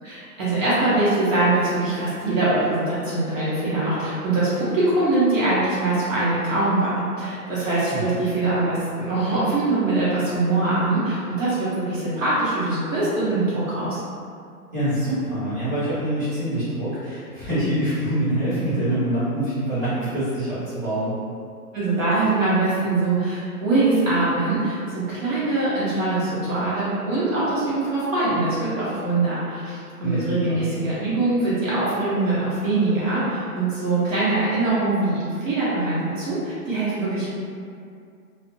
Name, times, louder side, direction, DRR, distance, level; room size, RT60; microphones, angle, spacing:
voice 1, 0.0-14.0 21.7-37.3, right 2 dB, 55° right, -10 dB, 0.9 m, -23 dB
voice 2, 7.7-8.0 14.7-21.2 30.0-30.7, right 1 dB, 15° right, -16 dB, 1.0 m, -25 dB
2.5 x 2.1 x 2.5 m, 2.3 s
hypercardioid pair, 160°, 47 cm